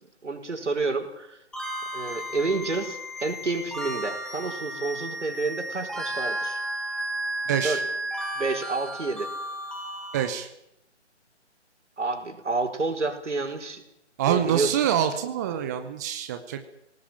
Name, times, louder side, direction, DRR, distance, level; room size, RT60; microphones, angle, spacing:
voice 1, 0.2-1.4 1.9-6.6 7.6-7.8 8.3-9.3 12.0-13.8 14.3-14.7, right 3 dB, 80° right, 5 dB, 5.1 m, -29 dB
sound 1, 1.5-10.3, right 1 dB, ahead, 2.3 m, -33 dB
voice 2, 7.5-7.8 10.1-10.5 14.2-16.6, right 9 dB, 15° right, 8 dB, 0.9 m, -25 dB
19.0 x 18.5 x 8.9 m, 0.81 s
figure-of-eight pair, 150°, 35 cm